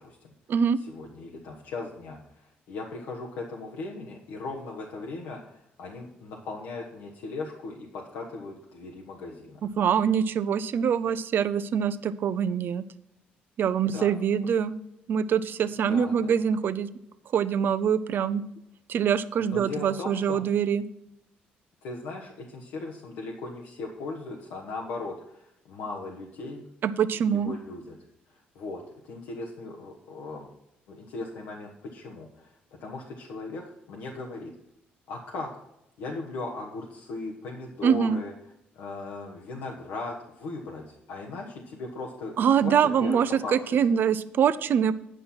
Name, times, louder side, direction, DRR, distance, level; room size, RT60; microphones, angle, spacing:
voice 1, 0.0-0.3 0.9-9.6 13.9-14.1 15.9-16.3 19.4-20.4 21.8-26.7 27.3-28.0 28.5-30.5 30.9-32.5 32.8-33.6 33.9-34.5 35.1-35.6 36.0-38.3 38.7-43.5, left 3 dB, 85° left, -1 dB, 1.2 m, -38 dB
voice 2, 9.6-12.8 13.6-14.7 15.1-16.9 17.3-18.4 18.9-20.8 26.8-27.5 37.8-38.2 42.4-44.9, right 7 dB, 60° right, 15 dB, 0.5 m, -24 dB
9.3 x 5.6 x 5.9 m, 0.83 s
cardioid pair, 80°, 4 cm